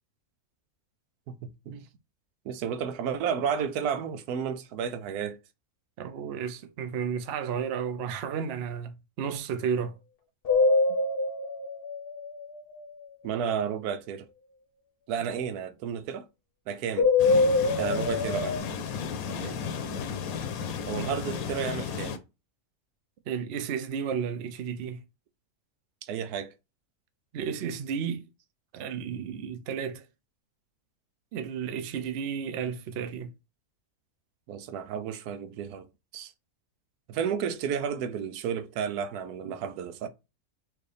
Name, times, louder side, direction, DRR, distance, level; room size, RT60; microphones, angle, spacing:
voice 1, 1.3-1.9 2.4-5.4 13.2-14.3 15.1-16.3 16.7-17.1 17.8-18.6 20.9-22.2 26.0-26.5 34.5-35.9 36.1-36.3 37.1-40.1, right 7 dB, 85° right, 1.1 m, -32 dB
voice 2, 6.0-9.9 15.3-15.4 19.4-19.6 23.3-25.0 27.3-28.3 28.7-30.0 31.3-33.3 39.4-39.5, right 7 dB, 60° right, 0.7 m, -33 dB
sound 1, 10.4-12.9 16.9-18.6, left 3 dB, 50° left, 0.8 m, -24 dB
sound 2, 17.2-22.2, left 6 dB, 75° left, 1.1 m, -34 dB
4.6 x 2.6 x 3.2 m
omnidirectional pair, 1.6 m